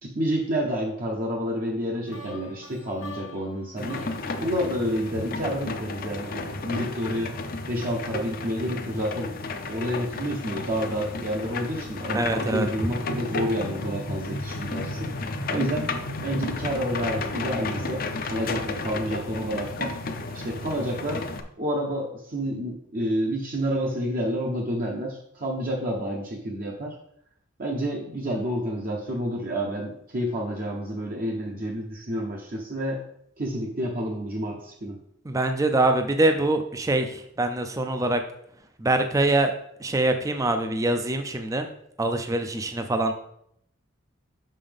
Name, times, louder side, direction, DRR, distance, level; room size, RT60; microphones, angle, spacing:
voice 1, 0.0-4.1 4.4-7.3 7.7-9.3 9.7-15.1 15.5-15.9 16.2-19.9 20.3-21.2 21.6-27.0 27.6-33.0 33.4-35.0, equal, 45° right, -1 dB, 0.9 m, -29 dB
sound 1, 2.1-6.0, left 1 dB, 75° left, 1.0 m, -44 dB
sound 2, 3.8-21.4, left 2 dB, 50° left, 0.6 m, -32 dB
voice 2, 12.1-12.7 35.3-38.2 38.8-39.5 39.8-41.7 42.0-43.1, right 2 dB, 15° right, 7 dB, 0.4 m, -24 dB
6.1 x 5.5 x 3.5 m, 0.71 s
head